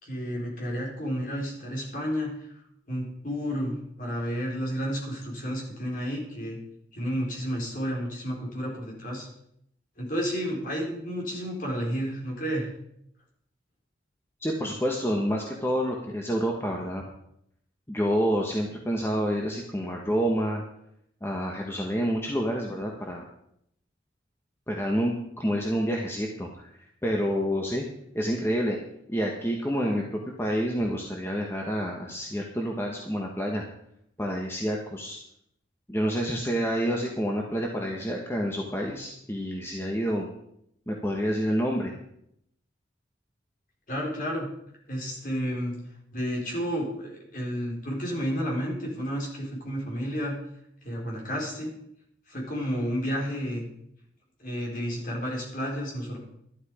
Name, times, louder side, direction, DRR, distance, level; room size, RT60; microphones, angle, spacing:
voice 1, 0.0-2.5 2.9-6.6 6.9-9.3 10.0-12.7 43.9-44.5 44.9-45.7 46.1-50.4 50.8-51.7 52.3-53.6 54.4-56.2, equal, 45° left, -2 dB, 4.4 m, -31 dB
voice 2, 14.4-17.0 17.9-20.6 21.2-23.2 24.7-26.7 27.0-27.8 28.1-28.8 29.1-33.6 34.2-35.2 35.9-40.3 40.9-42.0, equal, 15° left, 0 dB, 1.2 m, -28 dB
12.5 x 11.5 x 4.9 m, 0.75 s
head